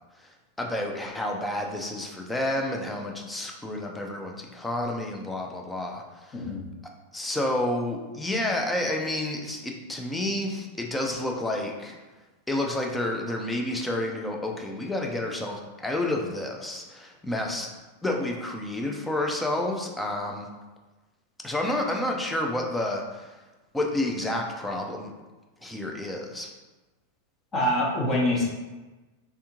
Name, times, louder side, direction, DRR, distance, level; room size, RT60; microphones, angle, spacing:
voice 1, 0.6-6.4 7.1-11.9 12.5-17.7 18.0-20.5 21.4-23.4 23.7-25.1 25.6-26.5, left 1 dB, 5° left, 1 dB, 0.5 m, -30 dB
voice 2, 6.3-6.7 27.5-28.4, left 1 dB, 25° left, -3 dB, 1.1 m, -25 dB
3.5 x 3.4 x 2.9 m, 1.2 s
figure-of-eight pair, 90°, 0 cm